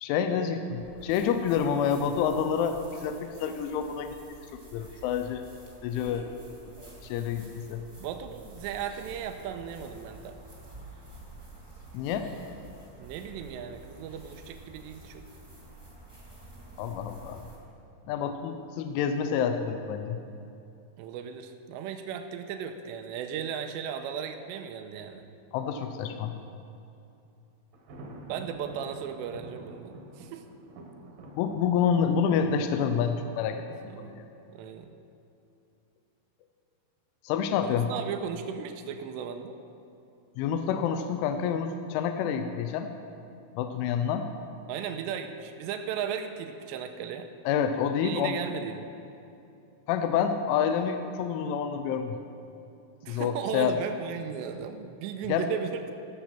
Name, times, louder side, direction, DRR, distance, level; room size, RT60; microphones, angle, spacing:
voice 1, 0.0-4.2 4.7-5.4 5.8-6.3 7.0-7.8 11.9-12.3 16.8-17.4 18.1-20.2 25.5-26.3 31.4-33.6 34.0-34.2 37.3-37.9 40.4-42.9 43.6-44.3 47.5-48.4 49.9-52.2 53.1-53.7 55.3-55.4, left 7 dB, 85° left, 7 dB, 3.1 m, -28 dB
sound 1, 0.8-17.6, right 2 dB, 10° right, 1.2 m, -49 dB
voice 2, 8.0-10.4 13.0-15.2 21.0-25.2 28.3-30.4 33.8-34.9 37.6-39.6 44.7-47.3 48.0-48.9 53.0-55.9, right 8 dB, 85° right, 7 dB, 2.6 m, -36 dB
Thunder, 27.7-33.5, right 1 dB, 65° right, 2.2 m, -48 dB
16.5 x 7.3 x 6.0 m, 2.7 s
omnidirectional pair, 5.6 m